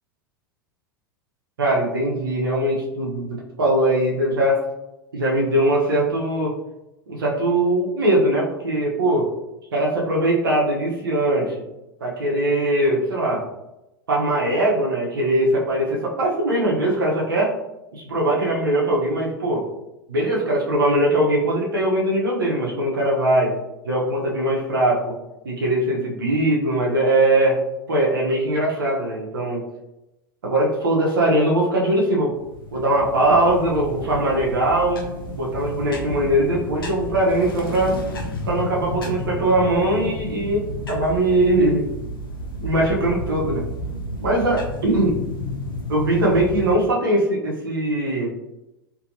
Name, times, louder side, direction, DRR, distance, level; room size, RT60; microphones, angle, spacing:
voice 1, 1.6-4.6 5.1-6.5 7.1-9.3 9.7-11.6 12.0-13.4 14.1-17.5 17.9-19.6 20.1-23.5 23.8-25.1 25.4-27.6 27.9-29.6 30.4-32.3 32.7-35.0 35.3-38.0 38.5-41.9 42.6-43.6 44.2-45.2 45.9-48.3, right 1 dB, 80° right, -3 dB, 0.6 m, -21 dB
sound 1, 32.3-46.8, left 1 dB, 85° left, 0.5 m, -32 dB
2.6 x 2.6 x 2.5 m, 0.94 s
figure-of-eight pair, 85°, 12 cm